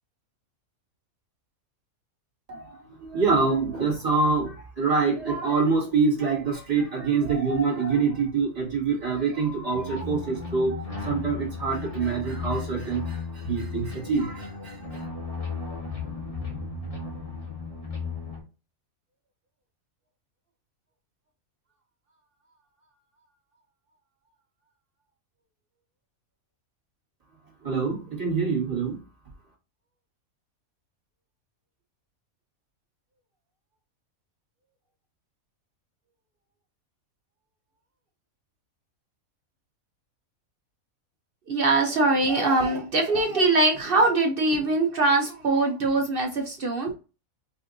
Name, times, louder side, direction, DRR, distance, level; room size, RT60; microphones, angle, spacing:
voice 1, 2.5-14.8 27.6-29.0, right 4 dB, 25° right, 1.6 m, -25 dB
sound 1, 9.7-18.4, left 4 dB, 30° left, 1.0 m, -35 dB
voice 2, 41.5-46.9, right 2 dB, 55° right, 0.7 m, -22 dB
5.0 x 2.7 x 2.6 m
omnidirectional pair, 1.5 m